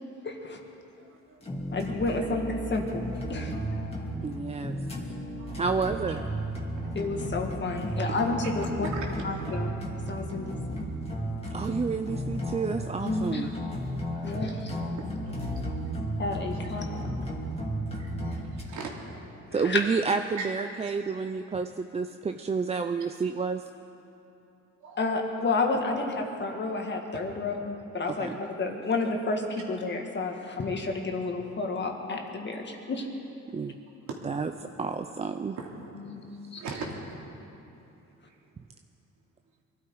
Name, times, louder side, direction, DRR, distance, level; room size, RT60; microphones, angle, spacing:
voice 1, 0.2-0.6 1.7-3.5 6.9-9.7 10.1-10.9 13.0-13.6 14.2-14.7 16.2-17.2 19.5-19.8 25.0-33.1 35.9-36.6, left 3 dB, 35° left, 2 dB, 1.9 m, -31 dB
voice 2, 1.0-1.4 5.4-5.6 8.8-9.0 14.1-14.3 15.0-15.3 15.6-15.7 17.6-18.9 20.4-20.5 20.8-20.9 24.8-25.0 34.1-34.4 35.6-35.9 36.5-37.0, right 4 dB, 70° right, -1 dB, 2.9 m, -40 dB
sound 1, 1.4-18.6, equal, 20° left, 2.3 m, -34 dB
voice 3, 4.2-4.7 5.5-6.2 11.5-13.5 19.5-23.6 28.2-28.4 33.5-33.8 34.2-34.5 34.8-35.6, right 5 dB, 20° right, 7 dB, 0.5 m, -30 dB
23.5 x 12.5 x 4.8 m, 2.9 s
cardioid pair, 110°, 31 cm